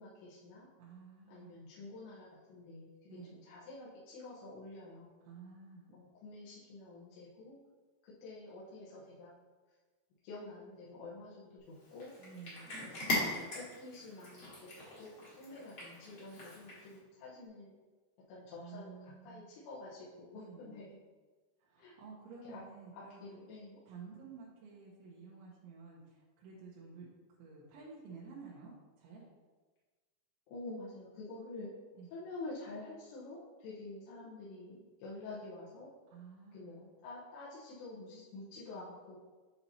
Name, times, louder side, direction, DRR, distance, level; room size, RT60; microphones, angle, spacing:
voice 1, 0.0-0.7 1.3-5.2 5.9-7.6 8.0-9.3 10.2-12.1 12.8-14.7 15.0-17.8 18.3-21.0 21.8-21.9 22.4-22.6 22.9-23.8 30.5-31.7 32.1-35.9 36.5-39.2, left 2 dB, 80° left, -8 dB, 3.2 m, -48 dB
voice 2, 0.8-1.6 3.1-3.4 5.3-5.9 12.2-12.7 18.6-19.5 20.4-20.8 21.6-23.2 23.9-27.1 27.4-28.7 29.0-29.2 32.0-32.1 36.1-36.7, right 5 dB, 90° right, -6 dB, 3.3 m, -52 dB
Cat, 11.8-17.0, left 2 dB, 50° left, 1.6 m, -40 dB
9.4 x 4.2 x 2.8 m, 1.3 s
omnidirectional pair, 5.3 m